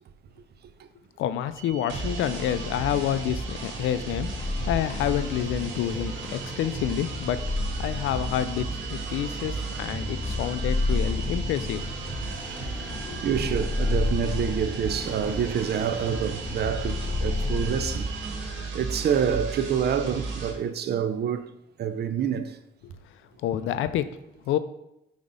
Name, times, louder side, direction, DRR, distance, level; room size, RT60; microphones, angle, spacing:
voice 1, 1.2-4.3 4.7-7.4 7.8-11.9 13.1-13.2 23.4-24.1 24.5-24.6, left 10 dB, 85° left, 0.4 m, -28 dB
sound 1, 1.5-18.4, right 9 dB, 15° right, 0.9 m, -44 dB
sound 2, 1.9-20.5, right 3 dB, 75° right, 1.6 m, -35 dB
sound 3, 4.2-18.7, left 2 dB, 5° left, 0.7 m, -32 dB
voice 2, 13.2-18.1 18.7-21.5 21.8-22.6, right 8 dB, 55° right, 0.6 m, -27 dB
5.0 x 4.0 x 5.5 m
cardioid pair, 90°, 20 cm